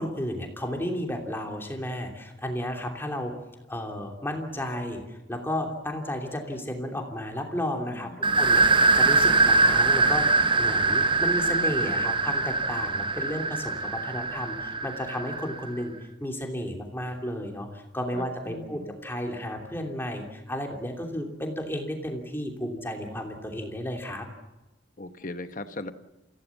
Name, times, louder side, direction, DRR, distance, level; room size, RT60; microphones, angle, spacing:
voice 1, 0.0-3.3 3.7-10.3 10.6-15.9 16.2-24.3, left 1 dB, 10° left, 2 dB, 2.9 m, -33 dB
voice 2, 7.9-8.6 18.1-19.0 25.0-25.9, left 2 dB, 45° left, 9 dB, 1.2 m, -39 dB
sound 1, 8.2-15.7, right 3 dB, 25° right, 0.7 m, -23 dB
28.0 x 16.5 x 7.3 m, 1.0 s
head